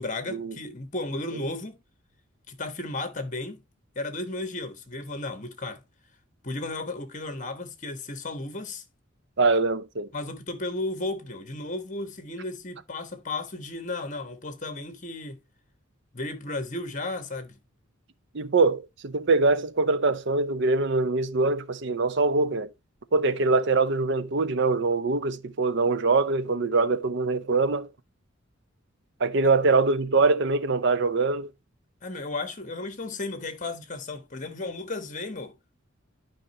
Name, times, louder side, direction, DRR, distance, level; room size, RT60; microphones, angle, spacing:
voice 1, 0.0-1.8 2.5-3.6 3.9-5.8 6.4-8.8 10.1-15.4 16.1-17.6 32.0-35.6, left 2 dB, 40° left, 1.3 m, -34 dB
voice 2, 9.4-10.1 18.3-22.7 23.1-27.9 29.2-31.5, right 3 dB, 60° right, 0.7 m, -23 dB
11.5 x 5.2 x 3.0 m
head